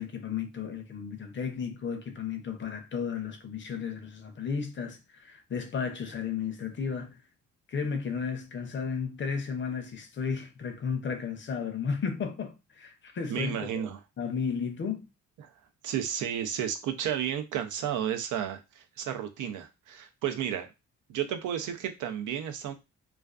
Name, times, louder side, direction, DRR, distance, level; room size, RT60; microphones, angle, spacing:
voice 1, 0.0-7.2 7.7-13.9 14.2-15.1, left 6 dB, 40° left, 0.6 m, -34 dB
voice 2, 13.3-14.0 15.4-15.5 15.8-20.7 21.1-22.7, right 9 dB, 80° right, 0.5 m, -32 dB
2.4 x 2.3 x 2.3 m
cardioid pair, 90°, 30 cm